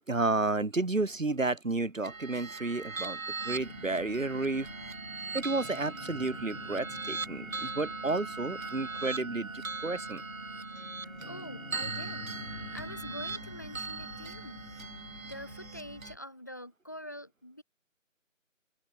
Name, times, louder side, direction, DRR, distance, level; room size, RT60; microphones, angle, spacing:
voice 1, 0.1-4.7 5.3-10.2, right 3 dB, 70° right, 2.1 m, -31 dB
sound 1, 2.0-16.1, right 4 dB, 90° right, 1.0 m, -40 dB
sound 2, 3.4-13.4, equal, 20° right, 1.2 m, -48 dB
sound 3, 3.5-16.2, left 3 dB, 80° left, 1.8 m, -49 dB
voice 2, 11.3-14.6 15.2-17.6, equal, 15° left, 1.3 m, -45 dB
open air
figure-of-eight pair, 165°, 40 cm